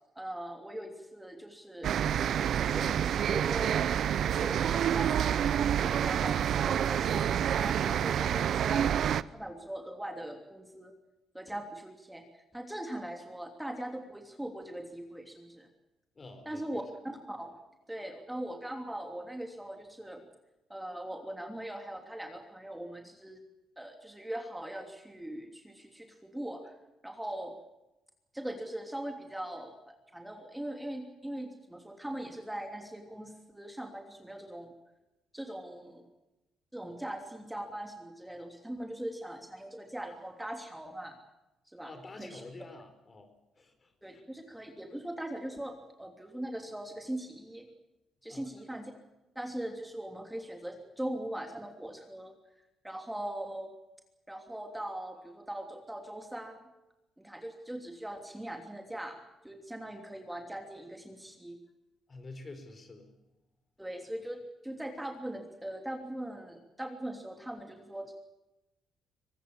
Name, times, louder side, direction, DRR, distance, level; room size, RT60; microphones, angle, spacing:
voice 1, 0.1-3.7 4.2-10.9 11.3-15.7 16.4-17.5 17.9-20.2 20.7-23.4 23.8-26.6 27.0-27.5 28.3-34.7 35.3-36.1 36.7-41.2 41.7-42.4 44.0-47.7 48.2-48.9 49.3-52.3 52.8-53.7 54.3-56.7 57.2-59.2 59.4-61.6 63.8-68.1, right 1 dB, 5° right, 4 dB, 3.1 m, -41 dB
sound 1, 1.8-9.2, right 9 dB, 65° right, 0.7 m, -28 dB
voice 2, 16.1-16.8 26.6-26.7 41.8-43.3 43.6-44.3 48.3-48.5 62.1-63.1, left 2 dB, 35° left, 8 dB, 4.9 m, -48 dB
24.0 x 20.0 x 7.4 m, 0.99 s
cardioid pair, 90°, 0 cm